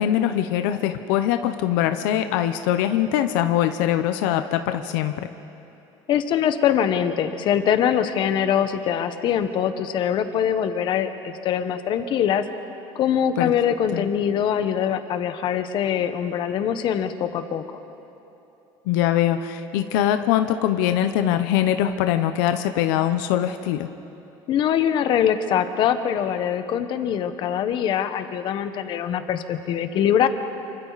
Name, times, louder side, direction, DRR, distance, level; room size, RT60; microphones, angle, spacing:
voice 1, 0.0-5.3 13.4-13.5 13.9-14.1 18.9-23.9, left 11 dB, 90° left, 8 dB, 0.9 m, -22 dB
voice 2, 6.1-12.4 12.9-17.6 24.5-30.3, left 9 dB, 50° left, 9 dB, 1.3 m, -23 dB
28.0 x 25.5 x 4.2 m, 2.9 s
cardioid pair, 140°, 10 cm